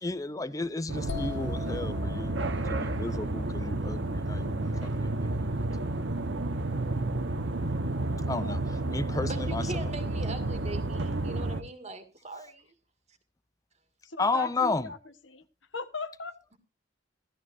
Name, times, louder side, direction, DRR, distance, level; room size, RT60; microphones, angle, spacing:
voice 1, 0.0-2.3 2.7-5.9 8.3-8.6 8.9-9.7 14.2-14.9, left 3 dB, 20° left, 0.6 m, -33 dB
sound 1, 0.9-11.6, right 2 dB, 75° right, 1.2 m, -31 dB
sound 2, 1.1-4.9, left 6 dB, 65° left, 0.9 m, -43 dB
voice 2, 8.2-9.1 14.0-15.5 15.7-16.4, left 3 dB, 85° left, 1.3 m, -40 dB
voice 3, 9.2-12.7, right 2 dB, 35° right, 2.1 m, -41 dB
15.5 x 13.5 x 2.6 m
head